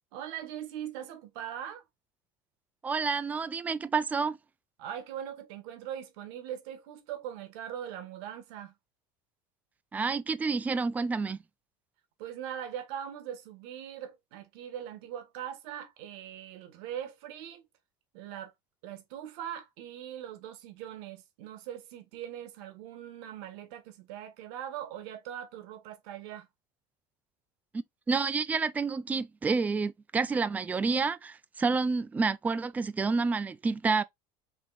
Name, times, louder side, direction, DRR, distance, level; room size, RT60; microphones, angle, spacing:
voice 1, 0.1-1.8 4.8-8.7 12.2-17.6 18.1-18.5 18.8-26.5, right 10 dB, 80° right, 1.4 m, -41 dB
voice 2, 2.8-4.4 9.9-11.4 28.1-34.0, right 4 dB, 10° right, 0.4 m, -29 dB
5.2 x 3.0 x 2.5 m
cardioid pair, 140°, 13 cm